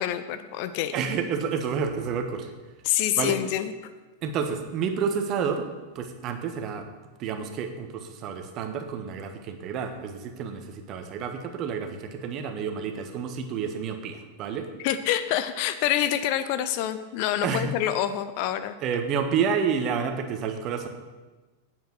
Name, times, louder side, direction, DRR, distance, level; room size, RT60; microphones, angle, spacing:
voice 1, 0.0-0.9 2.8-3.7 14.8-18.8, left 11 dB, 45° left, 11 dB, 0.6 m, -26 dB
voice 2, 0.9-2.5 3.2-3.4 4.2-5.7 5.9-6.9 7.2-14.7 17.4-17.8 18.8-20.9, right 6 dB, 35° right, 7 dB, 1.2 m, -29 dB
9.2 x 7.5 x 6.2 m, 1.2 s
figure-of-eight pair, 90°, 0 cm